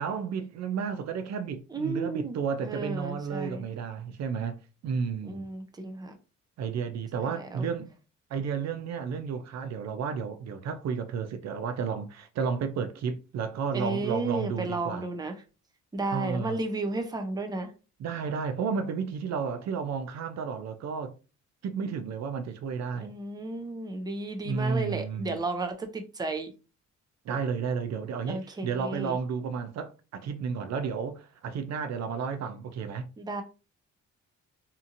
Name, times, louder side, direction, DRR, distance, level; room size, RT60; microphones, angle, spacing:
voice 1, 0.0-5.5 6.6-7.9 8.3-15.1 16.1-16.6 18.0-21.1 21.6-23.1 24.4-25.4 27.3-33.1, right 6 dB, 60° right, 0.5 m, -32 dB
voice 2, 1.7-3.6 5.3-6.1 7.2-7.7 13.7-15.3 15.9-17.7 22.9-26.5 28.3-29.2 33.2-33.4, right 2 dB, 15° right, 0.6 m, -33 dB
2.8 x 2.5 x 2.5 m
cardioid pair, 90°, 30 cm